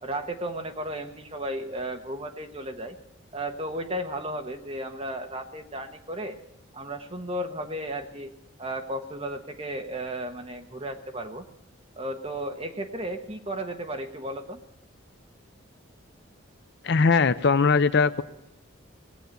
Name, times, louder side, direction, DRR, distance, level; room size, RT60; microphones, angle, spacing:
voice 1, 0.0-3.0 3.3-6.4 6.7-8.3 8.6-11.5 12.0-14.6, right 1 dB, 25° right, 4 dB, 1.2 m, -34 dB
voice 2, 16.8-18.2, left 4 dB, 55° left, 13 dB, 0.5 m, -20 dB
19.5 x 8.2 x 9.1 m, 0.89 s
head